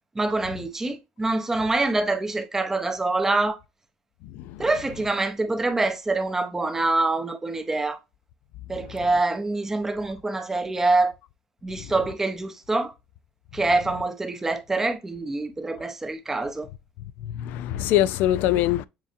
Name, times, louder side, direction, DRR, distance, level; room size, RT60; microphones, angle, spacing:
voice 1, 0.2-3.6 4.6-8.0 8.7-11.1 11.6-12.9 13.5-16.7, right 2 dB, 10° right, 0.7 m, -25 dB
voice 2, 4.2-4.7 8.9-9.1 17.2-18.9, left 13 dB, 65° left, 0.4 m, -24 dB
7.3 x 2.7 x 2.5 m
cardioid pair, 130°, 3 cm